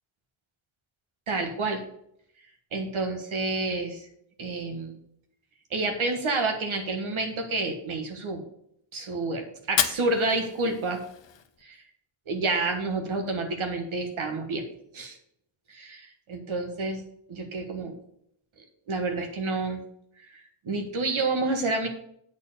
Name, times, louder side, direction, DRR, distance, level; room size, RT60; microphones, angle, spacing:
voice 1, 1.3-1.8 2.7-4.1 4.4-5.0 5.7-8.4 8.9-11.0 11.6-11.8 12.3-14.7 14.9-15.2 15.7-17.0 17.3-18.0 18.9-19.8 20.3-21.9, right 3 dB, 80° right, 4 dB, 1.6 m, -29 dB
Fire, 9.6-11.6, left 9 dB, 65° left, 0.8 m, -31 dB
8.2 x 4.5 x 6.8 m, 0.72 s
wide cardioid pair, 125°, 48 cm